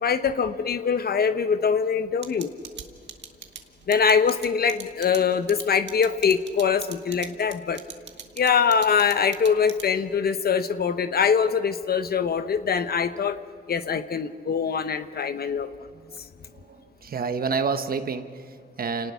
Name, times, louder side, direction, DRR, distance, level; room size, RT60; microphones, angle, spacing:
voice 1, 0.0-2.5 3.9-7.8 8.4-13.4 13.7-15.7, left 6 dB, 55° left, 10 dB, 1.0 m, -23 dB
sound 1, 2.2-10.1, right 8 dB, 75° right, 1.7 m, -40 dB
voice 2, 16.5-19.1, right 5 dB, 55° right, 8 dB, 1.2 m, -29 dB
29.0 x 19.0 x 5.8 m, 2.1 s
cardioid pair, 90°, 18 cm